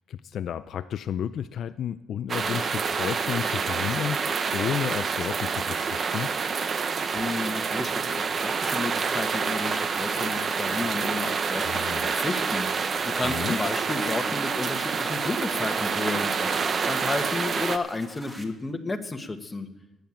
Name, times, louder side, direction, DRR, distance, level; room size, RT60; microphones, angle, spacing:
voice 1, 0.1-6.3 11.5-12.1 13.2-13.6, left 9 dB, 65° left, 12 dB, 0.4 m, -32 dB
sound 1, 2.3-17.8, right 5 dB, 45° right, 0.8 m, -27 dB
voice 2, 7.1-11.6 12.0-19.7, left 3 dB, 20° left, 5 dB, 1.5 m, -32 dB
sound 2, 12.7-18.4, equal, 10° right, 2.0 m, -47 dB
14.5 x 9.3 x 7.3 m, 1.0 s
cardioid pair, 90°, 0 cm